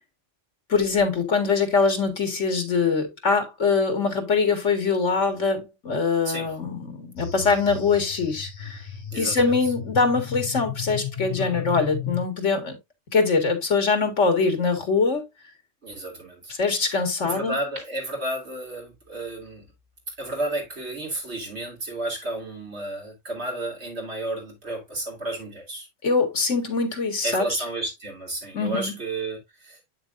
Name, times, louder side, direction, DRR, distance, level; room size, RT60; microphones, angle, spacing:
voice 1, 0.7-8.8 9.2-12.8 13.1-15.2 16.5-17.6 26.0-27.5 28.5-28.9, left 4 dB, 85° left, 2.3 m, -23 dB
sound 1, 7.2-12.3, left 9 dB, 45° left, 1.0 m, -34 dB
voice 2, 9.1-9.5 11.4-11.7 15.8-16.5 16.9-17.0 17.2-19.7 20.2-25.9 27.2-29.8, right 1 dB, 65° right, 3.2 m, -32 dB
8.6 x 6.7 x 2.6 m
omnidirectional pair, 1.2 m